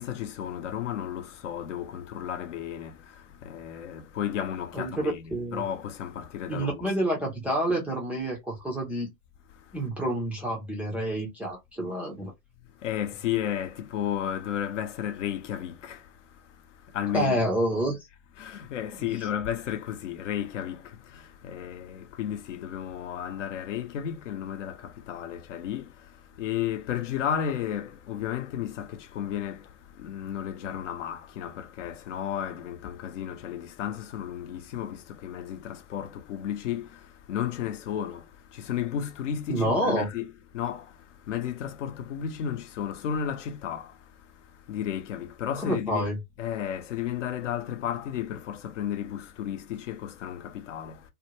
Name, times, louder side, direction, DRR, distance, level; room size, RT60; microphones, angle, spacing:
voice 1, 0.0-6.9 12.8-16.0 16.9-17.4 18.4-25.9 26.4-29.7 30.0-37.0 37.3-38.2 38.5-40.3 40.5-40.9 41.3-44.0 44.7-46.1 46.4-51.0, left 9 dB, 55° left, 0.7 m, -33 dB
voice 2, 4.7-5.6 6.5-9.1 9.7-12.3 17.1-18.0 39.5-40.1 45.6-46.2, right 1 dB, 5° right, 0.4 m, -28 dB
2.5 x 2.1 x 3.0 m
figure-of-eight pair, 105°, 43 cm